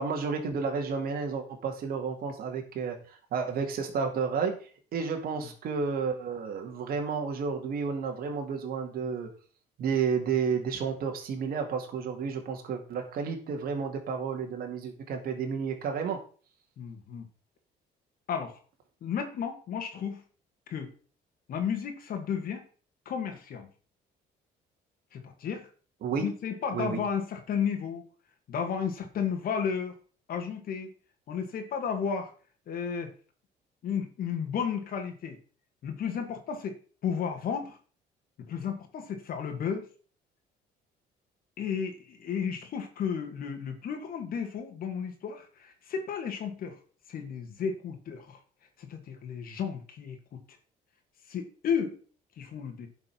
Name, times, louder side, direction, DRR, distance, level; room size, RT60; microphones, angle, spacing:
voice 1, 0.0-9.3 9.8-16.2 26.0-26.3 26.7-27.0, right 6 dB, 60° right, 3 dB, 2.3 m, -31 dB
voice 2, 16.8-17.3 18.3-18.6 19.0-20.2 20.7-20.9 21.5-22.6 23.1-23.7 25.1-25.7 26.2-28.1 28.5-29.9 30.3-30.9 31.3-32.3 32.7-33.1 33.8-35.4 35.8-36.8 37.0-37.8 38.5-39.9 41.6-46.8 47.1-48.4 48.8-50.4 51.3-52.0 52.4-52.9, left 7 dB, 60° left, 4 dB, 2.0 m, -33 dB
10.5 x 5.3 x 6.0 m, 0.40 s
cardioid pair, 110°, 17 cm